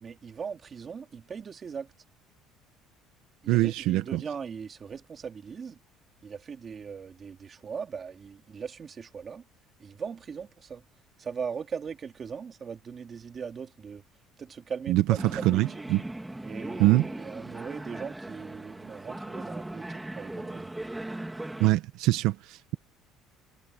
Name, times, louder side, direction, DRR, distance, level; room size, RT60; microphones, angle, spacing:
voice 1, 0.0-1.9 3.4-5.8 6.2-9.4 9.8-10.8 11.2-14.0 14.4-15.0 15.3-15.7 16.4-20.7, right 6 dB, 30° right, 2.7 m, -39 dB
voice 2, 3.5-4.2 14.9-15.0 15.3-16.0 16.8-17.1 21.6-22.8, right 17 dB, 75° right, 1.1 m, -24 dB
sound 1, 15.2-21.7, right 1 dB, 5° right, 2.3 m, -38 dB
cardioid pair, 150°, 0 cm